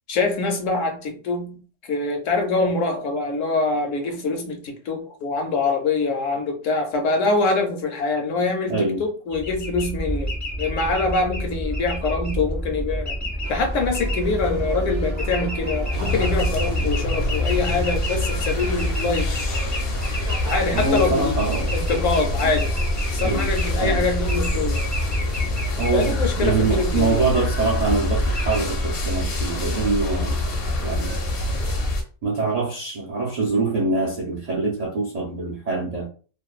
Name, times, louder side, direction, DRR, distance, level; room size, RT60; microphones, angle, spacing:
voice 1, 0.1-1.6 1.9-10.3 10.6-13.2 13.5-19.3 20.4-21.4 21.7-22.7 23.1-24.8 25.9-27.2, left 3 dB, 75° left, 1.0 m, -24 dB
voice 2, 8.7-9.0 20.7-21.7 22.4-22.5 23.2-23.5 23.8-24.1 25.8-30.4 30.8-31.2 32.2-36.1, right 3 dB, 70° right, 0.3 m, -24 dB
sound 1, 9.3-28.6, equal, 25° left, 0.4 m, -30 dB
sound 2, 13.4-31.9, right 3 dB, 55° right, 0.8 m, -38 dB
sound 3, 15.9-32.0, left 2 dB, 60° left, 0.7 m, -25 dB
2.6 x 2.2 x 2.3 m
omnidirectional pair, 1.3 m